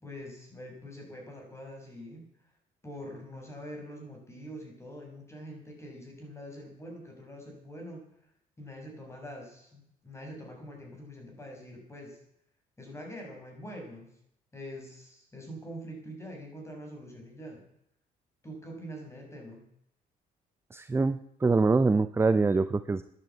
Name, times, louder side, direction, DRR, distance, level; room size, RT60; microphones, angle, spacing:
voice 1, 0.0-2.3 2.8-8.1 8.6-12.2 12.8-14.1 14.5-17.6 18.4-19.6, equal, 15° left, 1 dB, 6.5 m, -44 dB
voice 2, 20.7-23.0, right 3 dB, 15° right, 12 dB, 0.6 m, -24 dB
11.5 x 11.0 x 8.3 m, 0.74 s
cardioid pair, 110°, 17 cm